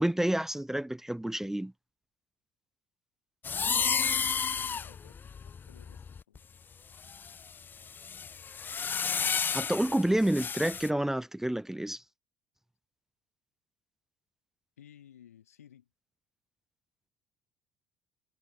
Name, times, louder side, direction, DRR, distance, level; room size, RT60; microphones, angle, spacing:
voice 1, 0.0-1.7 9.5-12.0, right 1 dB, 5° right, 0.7 m, -29 dB
sound 1, 3.4-6.4 7.0-10.9, left 6 dB, 25° left, 0.3 m, -32 dB
voice 2, 3.7-5.2 5.5-6.5 14.8-15.9, left 10 dB, 80° left, 2.3 m, -56 dB
figure-of-eight pair, 55°, 8 cm